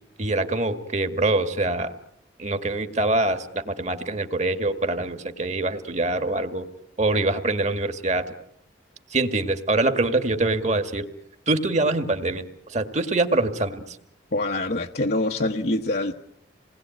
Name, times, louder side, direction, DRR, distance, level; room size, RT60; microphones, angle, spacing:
voice 1, 0.2-1.9 2.4-6.7 7.0-8.3 9.1-11.1 11.5-14.0, right 2 dB, 40° right, 9 dB, 2.1 m, -24 dB
voice 2, 14.3-16.1, left 2 dB, 55° left, 2 dB, 1.1 m, -25 dB
28.0 x 20.5 x 9.3 m, 0.72 s
head